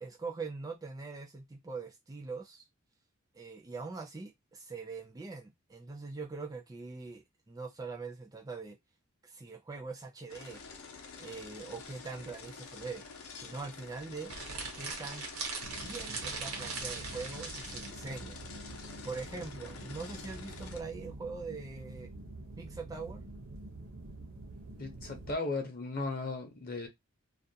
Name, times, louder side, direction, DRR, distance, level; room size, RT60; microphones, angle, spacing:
voice 1, 0.0-2.7 3.3-8.8 9.2-10.6 11.2-13.0 13.4-14.3 14.8-15.3 15.8-18.4 19.0-22.1 22.6-23.2, right 4 dB, 15° right, 0.4 m, -42 dB
sound 1, 10.3-20.8, left 5 dB, 80° left, 0.6 m, -48 dB
sound 2, 14.2-17.9, right 4 dB, 85° right, 0.9 m, -40 dB
sound 3, 15.6-25.3, right 2 dB, 65° right, 0.6 m, -47 dB
voice 2, 24.8-26.9, left 3 dB, 45° left, 0.7 m, -36 dB
2.4 x 2.1 x 2.7 m
head